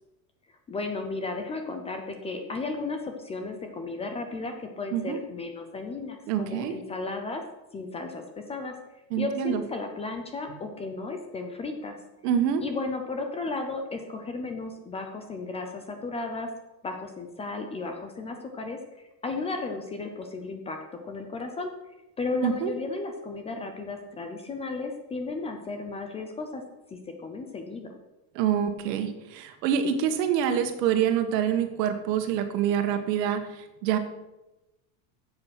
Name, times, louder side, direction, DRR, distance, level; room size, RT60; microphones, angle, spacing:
voice 1, 0.7-7.4 7.7-8.2 8.5-8.8 9.2-12.0 12.6-16.5 16.8-20.8 21.0-21.7 22.2-26.6 26.9-27.9, left 3 dB, 15° left, 5 dB, 0.4 m, -34 dB
voice 2, 6.3-6.7 9.1-9.6 12.2-12.6 22.4-22.7 28.3-34.0, right 9 dB, 85° right, 7 dB, 1.7 m, -26 dB
11.0 x 7.7 x 5.9 m, 1.0 s
cardioid pair, 175°, 48 cm